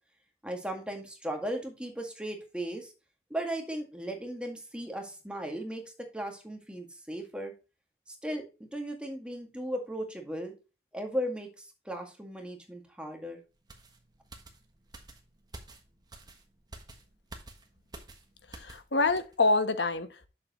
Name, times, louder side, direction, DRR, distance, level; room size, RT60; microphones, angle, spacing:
voice 1, 0.4-2.9 3.3-7.5 8.1-10.5 10.9-13.4, right 1 dB, 5° right, 1.9 m, -37 dB
sound 1, 13.7-18.9 19.2-19.4, right 2 dB, 25° right, 1.3 m, -50 dB
voice 2, 18.5-20.3, left 3 dB, 80° left, 1.1 m, -27 dB
7.8 x 7.0 x 3.0 m
head